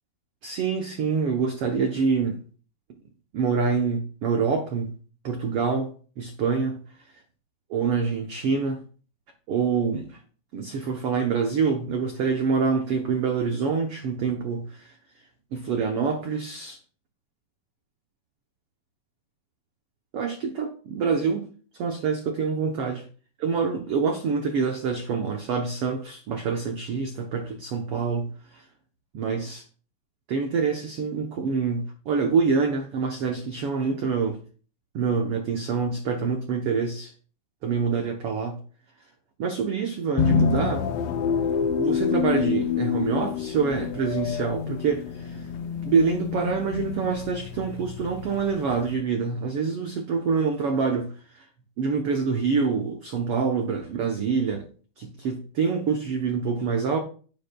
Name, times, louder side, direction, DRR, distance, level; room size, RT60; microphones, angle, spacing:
voice 1, 0.4-2.4 3.3-4.9 5.2-6.8 7.7-8.8 9.5-10.1 10.5-14.9 15.5-16.8 20.1-21.5 21.8-23.0 23.4-28.3 29.1-29.6 30.3-34.4 34.9-37.1 37.6-38.6 39.4-40.9 41.8-45.4 45.8-51.1 51.8-54.7 55.0-57.0, right 5 dB, 85° right, 1.2 m, -26 dB
sound 1, 40.2-48.9, left 7 dB, 75° left, 1.5 m, -27 dB
10.0 x 10.0 x 2.3 m
omnidirectional pair, 3.9 m